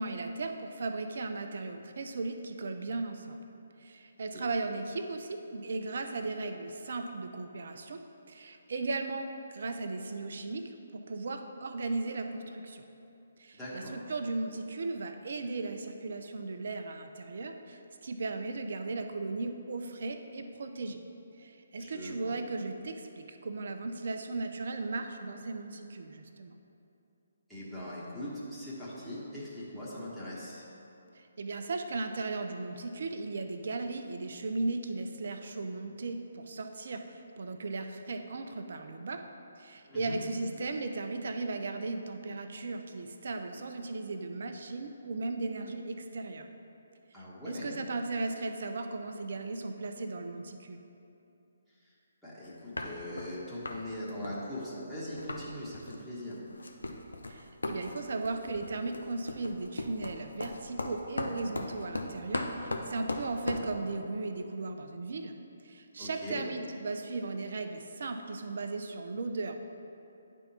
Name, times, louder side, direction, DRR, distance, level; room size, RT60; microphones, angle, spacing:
voice 1, 0.0-3.5 3.8-8.0 8.3-10.6 10.9-12.8 13.4-21.0 21.4-26.6 31.2-39.2 39.6-46.5 47.4-50.8 57.3-65.4 65.6-69.6, right 3 dB, 60° right, 6 dB, 0.5 m, -36 dB
voice 2, 13.5-13.9 21.8-22.3 27.5-30.7 39.9-40.2 47.1-47.8 52.2-56.4 66.0-66.4, left 1 dB, ahead, -11 dB, 1.3 m, -41 dB
sound 1, 52.4-52.5 52.8-53.4 53.7-53.8 54.1-55.4 55.7-56.0 56.3-63.7, left 2 dB, 80° left, 0.6 m, -37 dB
9.7 x 3.6 x 4.3 m, 2.8 s
figure-of-eight pair, 140°, 0 cm